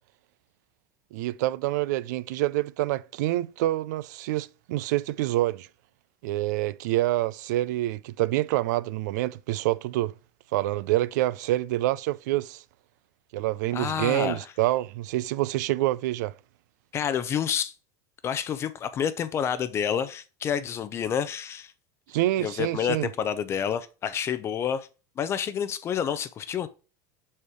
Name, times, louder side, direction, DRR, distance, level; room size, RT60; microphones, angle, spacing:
voice 1, 1.1-5.7 6.2-10.1 10.5-12.6 13.3-16.3 22.1-23.1, right 16 dB, 85° right, 0.4 m, -27 dB
voice 2, 13.7-14.4 16.9-17.7 18.2-21.7 22.4-24.9 25.2-26.7, left 8 dB, 30° left, 0.5 m, -29 dB
5.2 x 4.3 x 4.7 m
supercardioid pair, 150°, 9 cm